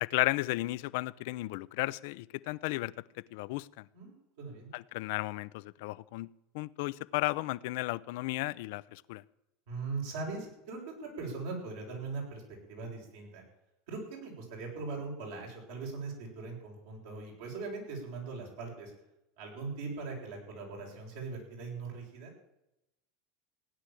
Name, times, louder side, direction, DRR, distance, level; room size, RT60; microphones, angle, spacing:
voice 1, 0.0-2.9 3.3-3.8 4.7-6.3 6.5-9.2, left 20 dB, 70° left, 19 dB, 0.5 m, -34 dB
voice 2, 3.9-4.7 9.7-12.4 12.7-13.4 13.9-18.9 19.4-22.3, right 4 dB, 75° right, -1 dB, 7.2 m, -40 dB
16.5 x 10.0 x 7.6 m, 0.88 s
hypercardioid pair, 100°, 0 cm